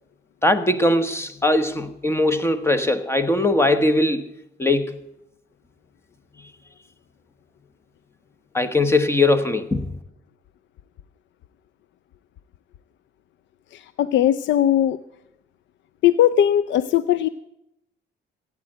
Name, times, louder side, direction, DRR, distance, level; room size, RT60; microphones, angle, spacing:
voice 1, 0.4-4.3 4.6-4.9 8.5-9.9, left 2 dB, 10° left, 1.2 m, -20 dB
voice 2, 13.7-15.0 16.0-17.3, left 11 dB, 70° left, 0.5 m, -19 dB
15.5 x 8.9 x 7.9 m
cardioid pair, 90°, 20 cm